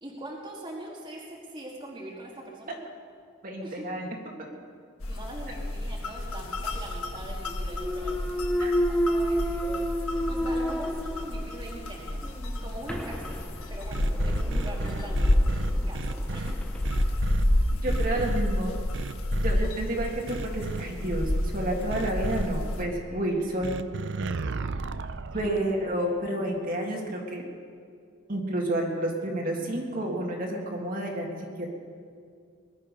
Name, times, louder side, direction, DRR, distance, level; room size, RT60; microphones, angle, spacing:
voice 1, 0.0-2.8 3.6-3.8 5.1-9.9 10.3-12.3 12.6-15.4 15.9-16.6 16.9-17.2 25.3-25.7, right 1 dB, 20° right, -3 dB, 1.8 m, -42 dB
voice 2, 3.4-4.1 8.6-8.7 17.8-18.7 19.4-23.8 25.3-27.4 28.3-31.7, right 1 dB, 40° right, 0 dB, 2.0 m, -30 dB
sound 1, 5.0-22.8, left 1 dB, 85° left, 1.4 m, -29 dB
Thump thud, 7.7-11.7 12.2-16.9, equal, 5° left, 0.6 m, -31 dB
sound 2, 13.9-16.5 16.8-17.4 17.9-18.4 18.9-19.5 20.3-20.8 21.9-22.5 23.6-25.6, right 4 dB, 55° right, 0.5 m, -34 dB
20.5 x 11.5 x 5.3 m, 2.3 s
head